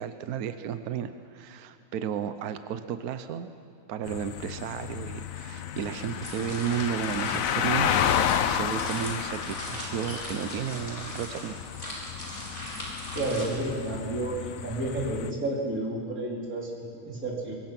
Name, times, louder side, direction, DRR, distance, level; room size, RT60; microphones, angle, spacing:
voice 1, 0.0-3.5 3.9-11.6, right 8 dB, 65° right, 10 dB, 0.9 m, -33 dB
sound 1, 4.1-15.3, left 9 dB, 75° left, 0.7 m, -31 dB
sound 2, 5.4-13.5, equal, 25° left, 5.0 m, -40 dB
voice 2, 13.1-17.5, right 2 dB, 40° right, -3 dB, 4.5 m, -31 dB
25.0 x 22.0 x 5.9 m, 2.4 s
omnidirectional pair, 2.3 m